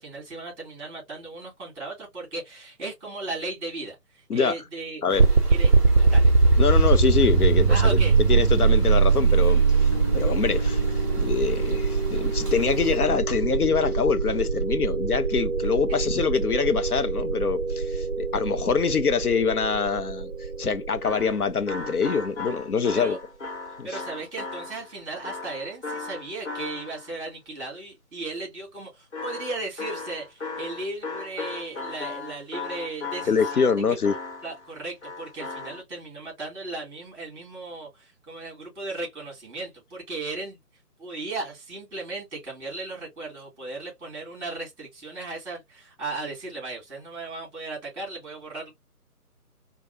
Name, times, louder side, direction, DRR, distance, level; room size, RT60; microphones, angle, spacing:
voice 1, 0.0-4.0 4.3-5.0 5.5-6.3 7.7-8.1 22.9-23.2 23.8-33.8 34.4-40.6 41.0-48.7, right 3 dB, 15° right, 2.9 m, -36 dB
sound 1, 5.1-13.0, right 1 dB, 10° left, 0.9 m, -42 dB
sound 2, 5.1-22.1, right 4 dB, 45° right, 0.6 m, -22 dB
voice 2, 6.6-8.0 8.3-10.8 11.2-20.3 20.6-23.2 23.8-24.0 33.3-34.1, left 5 dB, 75° left, 0.7 m, -25 dB
sound 3, 21.0-27.2 29.1-34.7 35.0-35.8, left 3 dB, 50° left, 1.3 m, -36 dB
4.6 x 2.3 x 2.6 m
figure-of-eight pair, 150°, 46 cm